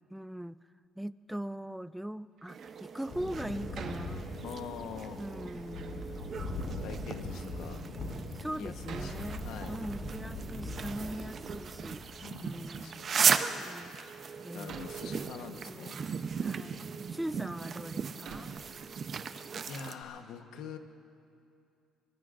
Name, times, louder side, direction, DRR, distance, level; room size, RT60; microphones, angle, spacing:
voice 1, 0.1-0.6 1.0-4.4 5.2-6.3 8.3-12.1 12.4-13.0 13.6-13.9 14.4-14.8 15.7-16.0 16.4-16.8 17.1-18.5, right 1 dB, 5° right, 16 dB, 0.3 m, -41 dB
Door, 2.4-2.9 3.7-4.7 5.4-6.0 6.8-6.9 7.6-7.7 8.8-10.0 10.3-11.4 11.7-12.5 13.9-14.0 14.7-16.6 17.3-17.4 18.2-19.3 19.6-19.7 19.8-20.0, right 5 dB, 65° right, 1.4 m, -48 dB
sound 1, 2.5-19.9, right 6 dB, 40° right, 0.7 m, -37 dB
Thunder, 3.1-12.7, left 2 dB, 50° left, 4.5 m, -41 dB
voice 2, 4.4-5.2 6.7-7.8 8.6-9.8 12.2-13.2 14.5-16.0 19.7-20.8, left 7 dB, 80° left, 6 dB, 1.1 m, -44 dB
25.0 x 22.0 x 2.6 m, 2.5 s
cardioid pair, 125°, 0 cm